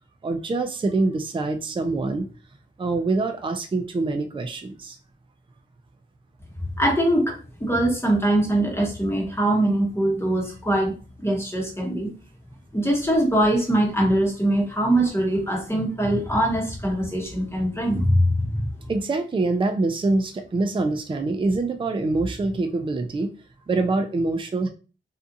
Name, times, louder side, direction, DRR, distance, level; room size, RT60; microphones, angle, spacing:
voice 1, 0.2-2.3 2.8-5.0 18.9-23.3 23.7-24.7, right 3 dB, 25° right, 6 dB, 0.4 m, -25 dB
voice 2, 6.6-12.1 12.7-18.7, right 1 dB, 10° left, -1 dB, 0.9 m, -22 dB
2.6 x 2.3 x 2.6 m, 0.35 s
wide cardioid pair, 75°, 20 cm